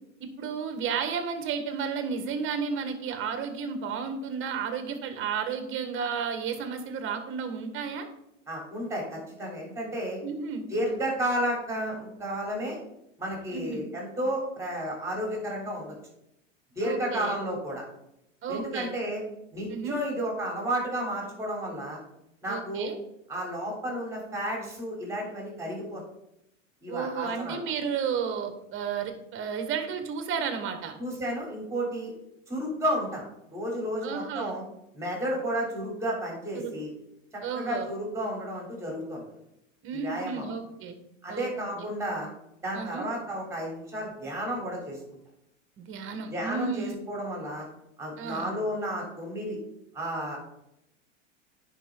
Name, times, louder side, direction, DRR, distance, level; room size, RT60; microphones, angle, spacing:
voice 1, 0.4-8.0 10.2-10.7 13.5-13.8 16.8-17.4 18.4-18.9 19.7-20.0 22.5-22.9 26.9-30.9 34.0-34.5 36.5-36.7 37.4-37.9 39.8-41.0 41.3-41.9 42.7-43.0 45.8-47.0 48.2-48.5, right 6 dB, 30° right, 7 dB, 1.5 m, -32 dB
voice 2, 8.5-10.2 10.7-12.8 13.2-15.9 16.7-17.8 18.5-19.2 19.5-22.0 22.4-22.9 23.3-26.0 26.8-27.6 31.0-32.1 32.5-33.2 33.5-34.6 34.9-36.9 37.5-39.3 40.0-40.5 41.2-42.3 42.6-45.0 46.3-47.7 48.0-49.6 49.9-50.4, equal, 5° right, -1 dB, 3.4 m, -32 dB
10.0 x 5.3 x 3.8 m, 0.82 s
hypercardioid pair, 120°, 38 cm